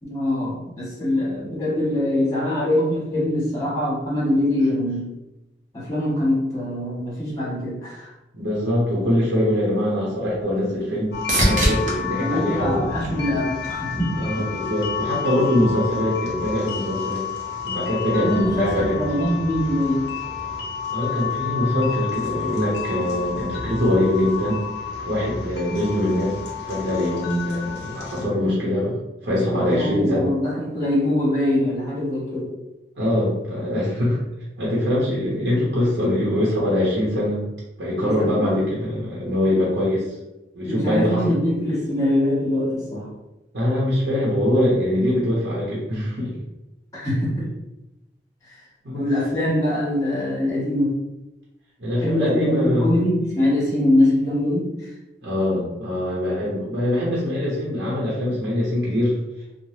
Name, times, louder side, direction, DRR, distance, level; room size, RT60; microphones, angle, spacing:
voice 1, 0.0-5.1 5.7-8.1 12.2-14.5 18.2-20.0 29.6-32.5 38.0-38.6 40.6-43.1 46.9-47.5 48.9-51.0 52.0-54.9, left 1 dB, 20° left, -6 dB, 1.2 m, -23 dB
voice 2, 8.3-12.9 14.2-17.2 17.6-19.0 20.9-24.6 25.0-28.9 29.2-30.3 33.0-34.2 34.6-37.4 37.8-40.0 40.5-41.2 43.5-46.4 48.8-49.1 51.8-52.9 55.2-59.2, left 1 dB, 75° right, -6 dB, 0.8 m, -23 dB
sound 1, 9.5-13.8 14.3-14.9 22.7-22.8, right 1 dB, 50° right, 0.7 m, -27 dB
sound 2, 11.1-28.3, left 6 dB, 70° left, 0.6 m, -30 dB
3.2 x 2.1 x 2.7 m, 0.96 s
head